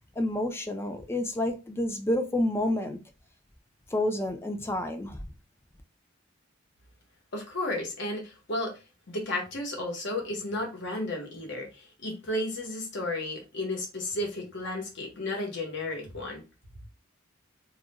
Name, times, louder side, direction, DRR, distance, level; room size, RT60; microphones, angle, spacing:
voice 1, 0.2-3.0 3.9-5.2, left 1 dB, 10° left, 0.4 m, -29 dB
voice 2, 7.3-8.8 9.1-16.4, left 2 dB, 60° left, 1.0 m, -33 dB
2.3 x 2.2 x 2.9 m
head